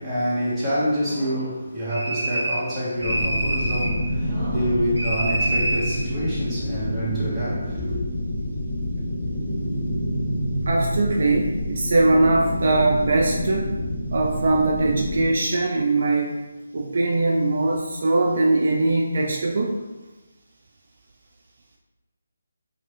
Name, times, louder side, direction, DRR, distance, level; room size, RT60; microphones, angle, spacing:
voice 1, 0.0-8.0, equal, 10° right, -11 dB, 1.1 m, -27 dB
sound 1, 1.9-2.7 3.0-4.0 5.0-6.0, right 1 dB, 85° right, 0.7 m, -26 dB
sound 2, 3.0-15.2, equal, 15° left, 0.8 m, -28 dB
voice 2, 10.7-13.8 14.1-16.4 16.7-19.8, right 2 dB, 55° right, 0 dB, 0.3 m, -21 dB
2.6 x 2.4 x 3.3 m, 1.1 s
figure-of-eight pair, 155°, 0 cm